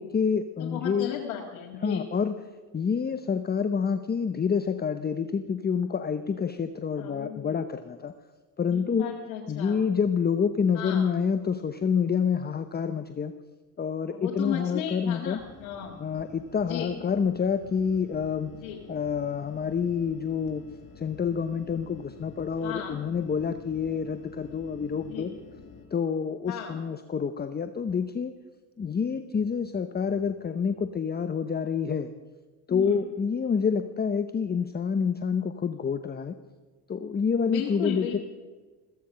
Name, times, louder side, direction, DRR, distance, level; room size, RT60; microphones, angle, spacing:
voice 1, 0.0-1.1 1.8-2.4 2.7-8.1 8.6-9.1 9.5-13.3 13.8-15.4 16.0-18.5 18.9-20.6 21.0-25.3 25.9-28.3 28.8-32.1 32.7-36.3 36.9-38.2, left 6 dB, 25° left, 10 dB, 0.8 m, -28 dB
voice 2, 0.6-2.0 7.0-7.6 8.7-9.8 10.7-11.1 14.1-16.0 16.6-17.0 18.6-18.8 22.6-23.0 25.1-25.3 26.5-26.8 32.7-33.0 37.5-38.2, left 9 dB, 80° left, -2 dB, 2.1 m, -35 dB
sound 1, 15.3-25.9, left 6 dB, 50° left, 5.0 m, -49 dB
15.5 x 14.0 x 5.7 m, 1.3 s
supercardioid pair, 80°, 41 cm